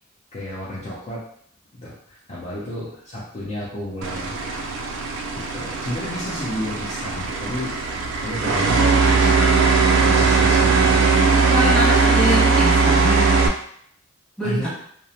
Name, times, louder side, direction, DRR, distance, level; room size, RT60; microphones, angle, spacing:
voice 1, 0.3-1.2 1.7-4.8 5.3-8.0 8.2-9.6 10.0-11.0 14.4-14.7, left 1 dB, 30° left, -9 dB, 0.6 m, -32 dB
sound 1, 4.0-13.5, right 4 dB, 65° right, 0.3 m, -19 dB
voice 2, 11.5-13.3 14.4-14.7, equal, 5° left, -9 dB, 1.1 m, -24 dB
2.6 x 2.0 x 2.8 m, 0.65 s
head